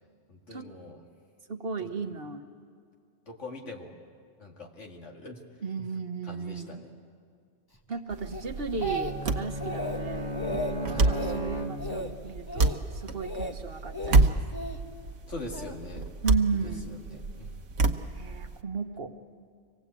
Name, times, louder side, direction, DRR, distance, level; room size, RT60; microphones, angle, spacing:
voice 1, 0.3-1.0 1.8-1.9 3.3-3.9 4.4-5.4 5.8-5.9 6.2-6.9 10.9-11.2 15.3-16.1 16.5-17.5, left 2 dB, 75° left, 1 dB, 2.4 m, -42 dB
voice 2, 1.5-2.4 5.6-6.8 7.9-10.4 10.7-14.4 16.2-17.0 18.1-19.1, right 5 dB, 55° right, 5 dB, 1.3 m, -34 dB
sound 1, 8.1-18.6, right 3 dB, 85° right, 1.3 m, -29 dB
Speech, 8.3-9.3 9.6-10.0 10.3-10.7 11.1-11.4 11.8-12.1 12.5-12.8 13.2-13.5 13.9-14.8 15.5-15.8, left 1 dB, 20° left, 1.2 m, -34 dB
Bowed string instrument, 8.7-12.3, equal, 40° left, 1.4 m, -36 dB
25.5 x 18.0 x 8.3 m, 2.2 s
omnidirectional pair, 1.2 m